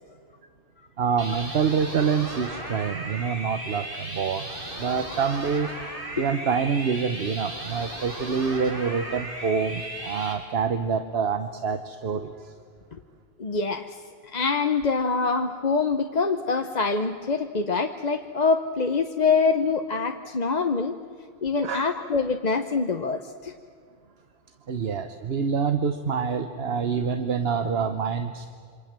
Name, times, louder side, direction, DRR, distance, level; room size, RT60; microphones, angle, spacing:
voice 1, 1.0-4.5 4.8-5.7 6.2-12.5 21.6-21.8 24.7-28.5, right 6 dB, 75° right, 9 dB, 1.2 m, -26 dB
sound 1, 1.2-10.3, right 1 dB, 60° right, 4.3 m, -36 dB
voice 2, 13.4-14.0 14.3-20.9 21.4-23.5, left 4 dB, 45° left, 6 dB, 1.0 m, -25 dB
27.5 x 25.0 x 7.5 m, 2.2 s
omnidirectional pair, 1.0 m